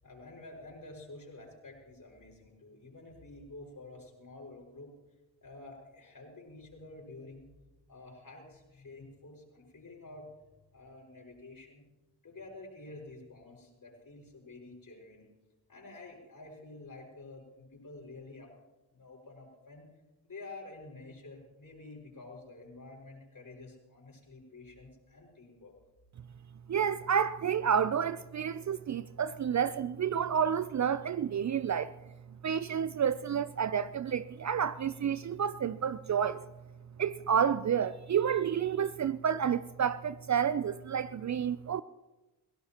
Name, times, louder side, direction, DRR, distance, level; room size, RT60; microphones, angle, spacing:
voice 1, 0.0-4.9 5.4-7.5 7.9-10.3 10.7-11.8 12.2-15.3 15.7-18.5 18.9-19.9 20.2-25.7, left 2 dB, 45° left, 5.8 m, -49 dB
voice 2, 26.7-31.9 32.4-36.4 37.0-41.8, right 8 dB, 40° right, 0.6 m, -30 dB
22.5 x 17.0 x 3.0 m
hypercardioid pair, 40°, 45 cm